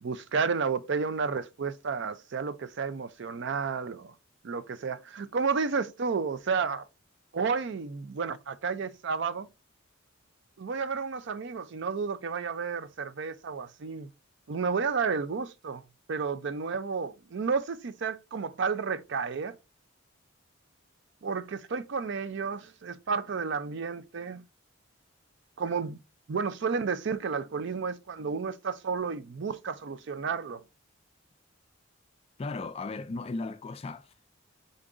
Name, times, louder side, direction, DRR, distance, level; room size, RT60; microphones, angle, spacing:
voice 1, 0.0-4.1 4.4-6.9 7.3-9.5 10.6-14.1 14.5-15.8 16.1-19.6 21.2-24.4 25.6-26.0 26.3-30.6, right 5 dB, 60° right, 0.5 m, -31 dB
voice 2, 32.4-34.3, left 3 dB, 30° left, 0.3 m, -36 dB
3.8 x 3.7 x 3.8 m
head